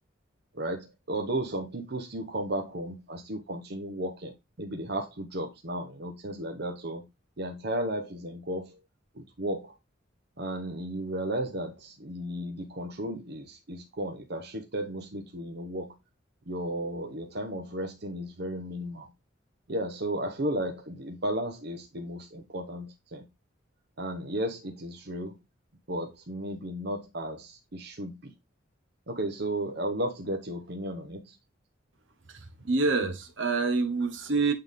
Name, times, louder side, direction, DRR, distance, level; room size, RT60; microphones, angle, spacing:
voice 1, 0.5-7.0 7.4-8.8 9.1-9.7 10.4-16.0 16.5-19.1 19.7-23.3 24.0-25.4 25.9-28.3 29.1-31.4, right 1 dB, 55° right, 1.0 m, -34 dB
voice 2, 32.3-34.5, right 3 dB, 75° right, 1.2 m, -27 dB
8.7 x 3.8 x 3.5 m
head